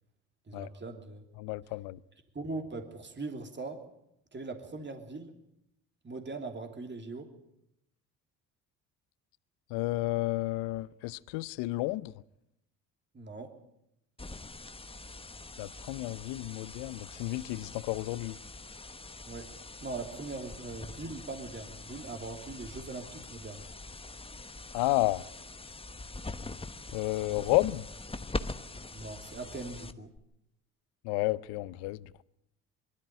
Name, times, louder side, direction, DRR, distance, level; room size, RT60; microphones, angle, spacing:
voice 1, 0.5-1.2 2.3-3.8 4.3-5.3 6.0-7.3 13.1-13.5 19.3-19.5 19.8-23.6 28.9-30.1, right 3 dB, 25° right, 3.0 m, -40 dB
voice 2, 1.4-2.0 9.7-12.1 15.6-18.4 24.7-25.2 26.9-27.9 31.0-32.2, left 20 dB, 75° left, 0.7 m, -31 dB
sound 1, 14.2-30.2, left 2 dB, 15° left, 1.1 m, -43 dB
22.0 x 13.0 x 9.2 m
hypercardioid pair, 60°, 41 cm